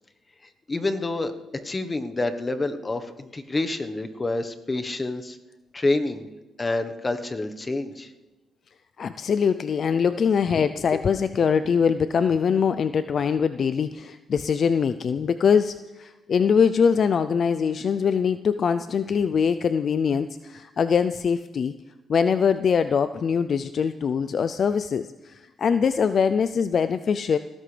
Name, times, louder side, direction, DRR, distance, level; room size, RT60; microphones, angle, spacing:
voice 1, 0.7-5.4 5.7-6.3 6.6-8.1, left 2 dB, 25° left, 8 dB, 1.1 m, -28 dB
voice 2, 9.0-21.7 22.1-27.4, left 6 dB, 50° left, 11 dB, 0.4 m, -23 dB
18.5 x 16.0 x 3.4 m, 1.1 s
cardioid pair, 90°, 0 cm